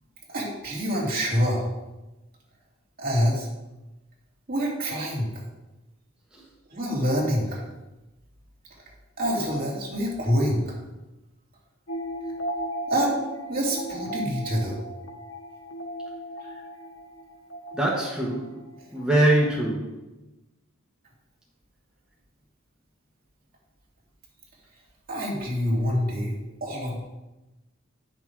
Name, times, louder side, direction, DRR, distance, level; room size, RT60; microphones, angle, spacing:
voice 1, 0.3-1.7 3.0-3.5 4.5-5.3 6.7-7.6 9.2-10.7 12.9-13.2 13.5-14.8 16.4-16.5 25.1-26.3 26.6-27.0, equal, 45° right, -3 dB, 2.7 m, -26 dB
sound 1, 11.9-19.7, right 1 dB, 75° left, 1.1 m, -37 dB
voice 2, 17.7-18.6 18.9-20.0, right 1 dB, 5° right, -6 dB, 1.4 m, -23 dB
10.0 x 6.1 x 4.7 m, 1.0 s
head